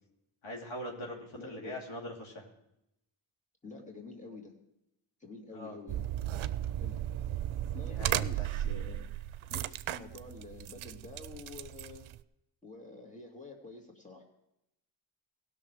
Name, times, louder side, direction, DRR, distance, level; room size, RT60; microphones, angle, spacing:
voice 1, 0.4-2.5 5.5-5.8 7.9-8.5, left 1 dB, 70° left, -1 dB, 2.6 m, -42 dB
voice 2, 1.4-1.7 3.6-4.5 5.2-6.1 6.8-7.0 7.7-9.1 9.5-12.1 12.6-14.2, left 3 dB, 15° left, 1 dB, 2.6 m, -48 dB
sound 1, 5.9-12.2, right 12 dB, 75° right, 0.6 m, -35 dB
16.5 x 6.3 x 4.9 m, 0.84 s
cardioid pair, 50°, 49 cm